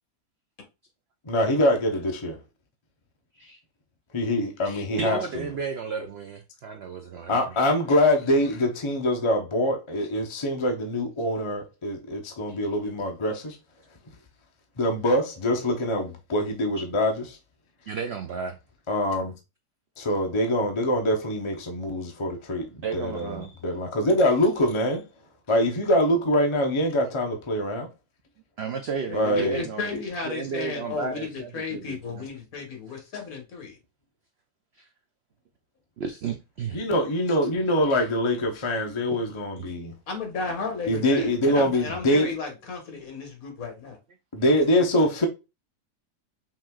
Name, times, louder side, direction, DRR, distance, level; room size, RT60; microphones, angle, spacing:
voice 1, 1.3-2.4 4.1-5.2 7.3-13.6 14.8-17.4 18.9-19.3 20.0-25.0 25.5-27.9 29.1-29.6 29.9-30.0 36.7-39.9 40.9-42.3 44.3-45.3, left 1 dB, 35° left, 0.4 m, -24 dB
voice 2, 5.0-7.5 16.8-16.9 17.9-18.6 22.8-23.6 28.6-29.9 30.2-32.3 34.8-34.9 36.0-36.8 39.1-39.2 39.6-39.7, right 6 dB, 75° right, 0.5 m, -33 dB
voice 3, 29.1-33.8 40.1-44.0, left 4 dB, 60° left, 1.7 m, -34 dB
5.7 x 3.1 x 2.3 m
omnidirectional pair, 1.7 m